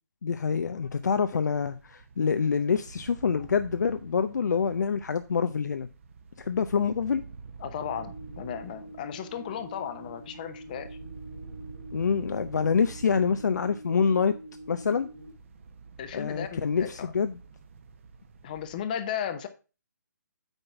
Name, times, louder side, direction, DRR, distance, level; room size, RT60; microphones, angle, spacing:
voice 1, 0.2-5.9 6.4-7.2 11.9-14.4 14.7-15.1 16.1-17.4, left 6 dB, 65° left, 0.6 m, -26 dB
sound 1, 0.9-18.8, right 5 dB, 40° right, 1.0 m, -48 dB
voice 2, 7.6-11.0 16.0-17.1 18.4-19.5, left 9 dB, 25° left, 0.8 m, -35 dB
sound 2, 7.8-15.3, right 1 dB, 90° left, 4.9 m, -46 dB
9.0 x 4.0 x 5.8 m
hypercardioid pair, 165°, 10 cm